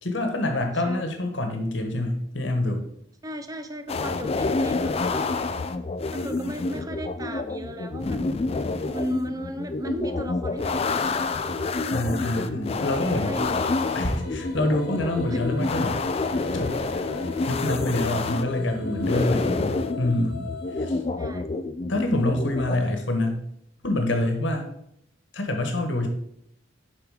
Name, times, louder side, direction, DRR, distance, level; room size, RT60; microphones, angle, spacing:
voice 1, 0.0-2.8 11.9-13.4 13.9-16.0 16.5-16.7 17.5-20.4 20.8-21.0 21.9-23.4 23.8-24.7 25.3-26.1, left 1 dB, 65° left, 5 dB, 1.2 m, -26 dB
voice 2, 3.2-5.4 6.1-8.2 8.9-11.7 13.1-13.8 19.1-19.4 21.2-21.5, right 1 dB, 20° right, 8 dB, 0.6 m, -35 dB
sound 1, 3.9-22.8, left 3 dB, 30° left, 0.3 m, -28 dB
sound 2, 13.6-20.9, left 4 dB, 50° left, 1.4 m, -41 dB
7.1 x 4.9 x 4.9 m, 0.76 s
head